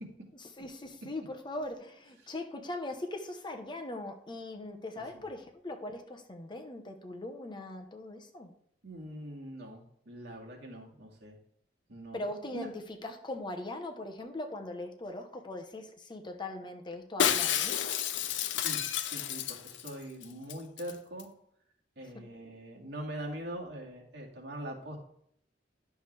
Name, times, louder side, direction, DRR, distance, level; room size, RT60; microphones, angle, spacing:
voice 1, 0.6-8.5 12.1-12.7 13.0-17.8, left 2 dB, 25° left, 5 dB, 0.9 m, -40 dB
voice 2, 8.8-11.4 11.9-12.2 12.5-12.7 18.2-18.8 19.1-21.3 22.0-25.0, right 1 dB, 65° right, -1 dB, 2.1 m, -43 dB
Shatter, 17.2-19.9 20.2-20.3 20.5-20.9 21.2-21.3, left 9 dB, 85° left, 0.6 m, -30 dB
11.0 x 6.9 x 3.3 m, 0.67 s
head